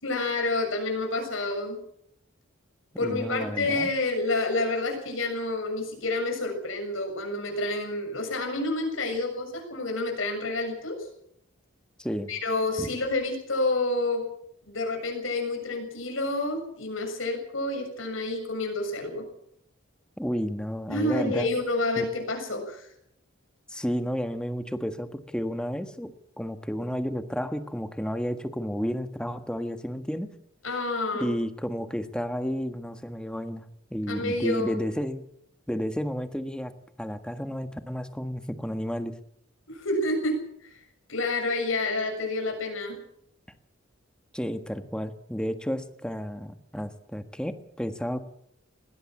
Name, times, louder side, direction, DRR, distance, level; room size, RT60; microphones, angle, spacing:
voice 1, 0.0-1.8 3.0-11.1 12.3-14.2 14.7-19.2 20.9-22.9 30.6-31.3 34.1-34.8 39.7-40.7 41.1-43.0, left 2 dB, 80° left, 3 dB, 7.0 m, -29 dB
voice 2, 3.0-3.9 12.0-12.3 12.8-12.9 20.2-21.5 22.0-22.1 23.7-30.3 31.1-35.2 35.7-36.7 37.0-39.1 44.3-48.2, equal, 5° left, 8 dB, 1.5 m, -32 dB
20.5 x 17.5 x 7.6 m, 0.72 s
head